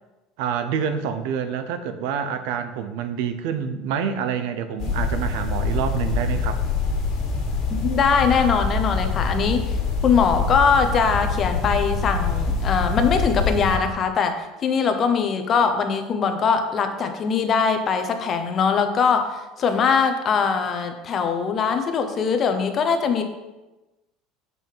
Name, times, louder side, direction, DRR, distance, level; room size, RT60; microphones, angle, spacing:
voice 1, 0.4-6.6, right 7 dB, 75° right, 10 dB, 0.7 m, -27 dB
sound 1, 4.8-13.8, left 4 dB, 45° left, 1.8 m, -25 dB
voice 2, 7.7-9.6 10.0-23.2, left 6 dB, 30° left, 7 dB, 0.8 m, -21 dB
7.4 x 5.4 x 4.6 m, 1.1 s
cardioid pair, 155°, 0 cm